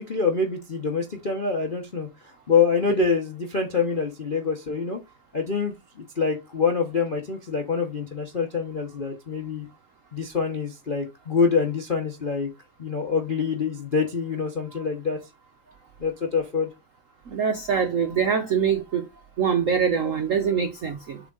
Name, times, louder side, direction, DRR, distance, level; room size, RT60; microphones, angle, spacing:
voice 1, 0.0-5.0 5.3-9.7 10.1-12.5 12.8-15.2 16.0-16.7, left 5 dB, 50° left, 0.6 m, -25 dB
voice 2, 17.3-19.0 19.4-21.2, right 7 dB, 70° right, 0.7 m, -24 dB
7.2 x 3.5 x 3.8 m
omnidirectional pair, 2.3 m